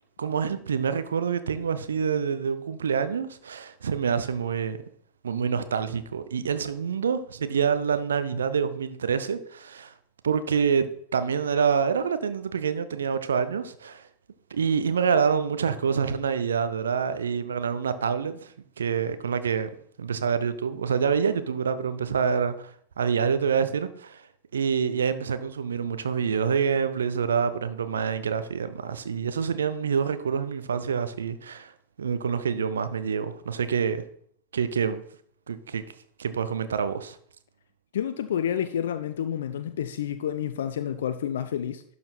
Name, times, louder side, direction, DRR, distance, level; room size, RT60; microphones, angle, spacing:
voice 1, 0.2-4.8 5.2-9.9 10.2-14.0 14.5-19.7 20.0-22.7 23.0-24.2 24.5-31.7 32.0-34.0 34.5-35.0 35.5-35.8 36.2-37.2, right 6 dB, 70° right, 0.6 m, -26 dB
voice 2, 37.9-41.8, left 9 dB, 60° left, 0.4 m, -29 dB
11.5 x 4.2 x 4.3 m
figure-of-eight pair, 90°, 0 cm